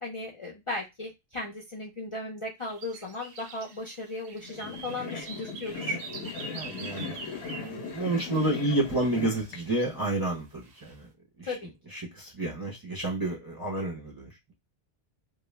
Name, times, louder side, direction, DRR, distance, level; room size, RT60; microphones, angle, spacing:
voice 1, 0.0-6.0 11.4-11.7, left 2 dB, 40° left, 0.5 m, -36 dB
sound 1, 2.6-8.5 9.4-10.1 10.6-10.9, right 4 dB, 75° right, 0.8 m, -45 dB
sound 2, 4.4-9.6, left 5 dB, 85° left, 0.9 m, -38 dB
voice 2, 6.4-7.2 7.5-11.1 11.4-11.6 11.9-14.5, right 2 dB, 25° right, 0.6 m, -30 dB
2.3 x 2.1 x 3.1 m
omnidirectional pair, 1.1 m